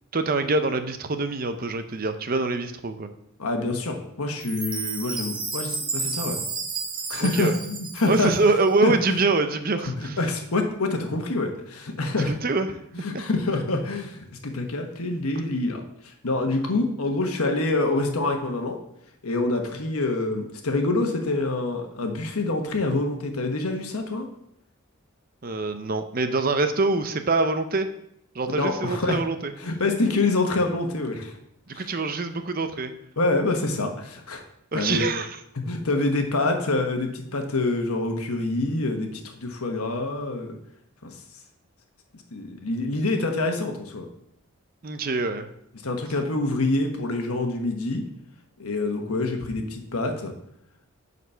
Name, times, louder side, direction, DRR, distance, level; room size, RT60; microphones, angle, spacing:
voice 1, 0.1-3.1 7.2-7.6 8.0-10.2 12.3-12.8 25.4-27.9 28.3-29.5 31.7-32.9 34.7-35.4 44.8-45.5, right 3 dB, 40° right, 8 dB, 0.6 m, -25 dB
voice 2, 3.4-6.4 7.1-8.3 8.8-9.2 10.0-12.3 13.0-18.8 19.2-24.3 28.6-29.2 29.6-31.4 31.7-31.9 33.2-34.4 34.7-35.1 35.7-40.6 41.0-41.2 42.3-44.1 45.8-48.0 48.6-50.3, left 2 dB, 90° left, 4 dB, 1.3 m, -26 dB
Chime, 4.4-8.6, right 4 dB, 20° right, 1.0 m, -32 dB
9.4 x 4.2 x 5.6 m, 0.75 s
head